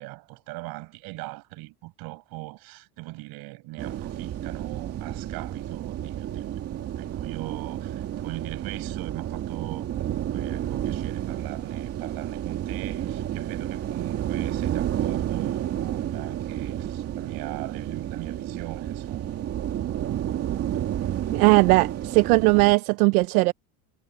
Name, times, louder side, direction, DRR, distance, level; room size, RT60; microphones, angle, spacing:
voice 1, 0.0-6.6 7.0-19.3, right 23 dB, 60° right, 6.4 m, -40 dB
sound 1, 3.8-22.7, right 11 dB, 35° right, 2.3 m, -31 dB
voice 2, 21.3-23.5, right 27 dB, 90° right, 0.8 m, -19 dB
cardioid pair, 150°, 42 cm